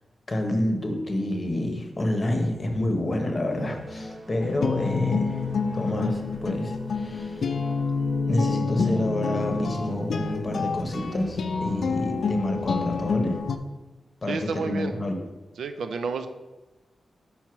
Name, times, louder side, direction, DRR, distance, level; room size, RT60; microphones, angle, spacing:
voice 1, 0.3-5.4 5.7-7.4 8.3-13.4 14.2-15.2, left 1 dB, 25° left, 4 dB, 0.8 m, -28 dB
sound 1, 3.5-13.4, equal, 30° right, 1.0 m, -39 dB
sound 2, 4.4-13.6, left 5 dB, 55° left, 0.4 m, -28 dB
voice 2, 14.3-14.9 15.6-16.3, right 4 dB, 85° right, 8 dB, 0.5 m, -30 dB
5.5 x 4.5 x 5.9 m, 1.1 s
wide cardioid pair, 175°, 0 cm